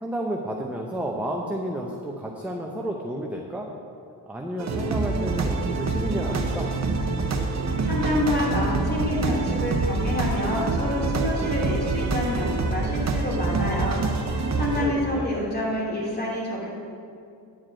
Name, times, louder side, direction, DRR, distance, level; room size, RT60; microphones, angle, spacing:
voice 1, 0.0-3.7 4.3-6.7 14.3-15.3, right 1 dB, 5° right, -1 dB, 0.6 m, -31 dB
sound 1, 4.6-14.9, right 3 dB, 40° right, 0.9 m, -26 dB
voice 2, 7.8-14.0 14.5-16.7, left 1 dB, 25° left, -5 dB, 2.7 m, -27 dB
10.5 x 4.7 x 7.5 m, 2.5 s
cardioid pair, 130°, 42 cm